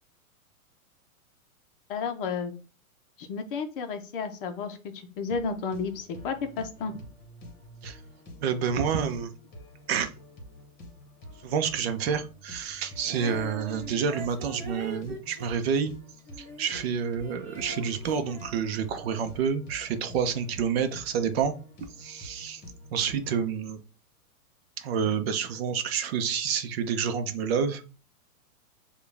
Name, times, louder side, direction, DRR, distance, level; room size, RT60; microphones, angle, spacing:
voice 1, 1.9-2.5 3.2-7.0, left 5 dB, 40° left, 7 dB, 0.7 m, -32 dB
sound 1, 5.3-23.4, left 1 dB, 25° left, 1.3 m, -48 dB
voice 2, 8.4-9.3 9.9-10.1 11.4-15.9 16.6-21.5 21.8-22.6 22.9-23.8 24.8-27.8, right 7 dB, 45° right, 8 dB, 0.7 m, -28 dB
Female singing, 13.1-16.9 17.2-19.3, right 1 dB, 15° right, 0.8 m, -43 dB
6.6 x 2.4 x 3.3 m, 0.34 s
hypercardioid pair, 140°, 43 cm